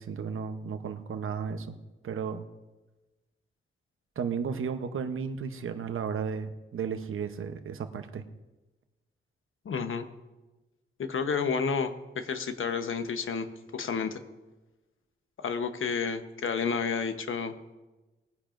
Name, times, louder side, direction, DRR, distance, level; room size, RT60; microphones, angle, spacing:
voice 1, 0.0-1.8 2.0-2.4 4.2-8.2, right 6 dB, 80° right, 8 dB, 0.9 m, -34 dB
voice 2, 9.6-10.1 11.0-13.5 13.7-14.2 15.4-17.6, left 5 dB, 75° left, 8 dB, 1.0 m, -30 dB
20.5 x 10.0 x 2.6 m, 1.1 s
wide cardioid pair, 100°, 21 cm